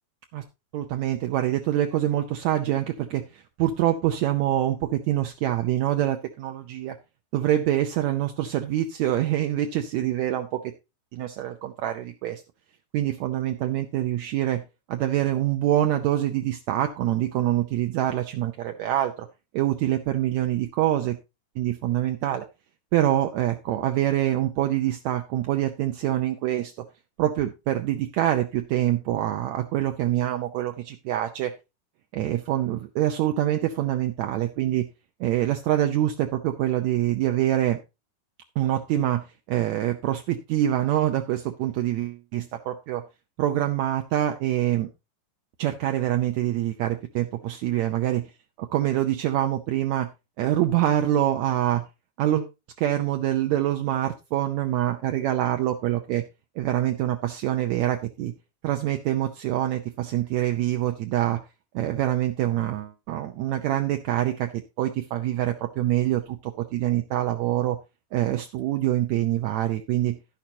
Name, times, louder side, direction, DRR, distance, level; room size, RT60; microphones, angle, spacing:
voice 1, 0.7-7.0 7.3-10.7 11.1-12.4 12.9-14.6 14.9-19.3 19.5-21.2 21.6-22.4 22.9-26.7 27.2-31.5 32.1-34.9 35.2-37.8 38.6-43.0 43.4-44.9 45.6-48.3 48.6-50.1 50.4-51.9 52.2-52.5 52.8-56.2 56.6-58.3 58.6-61.4 61.7-64.5 64.8-67.8 68.1-70.2, right 13 dB, 80° right, 5 dB, 1.6 m, -25 dB
11.5 x 10.5 x 2.8 m, 0.25 s
omnidirectional pair, 4.1 m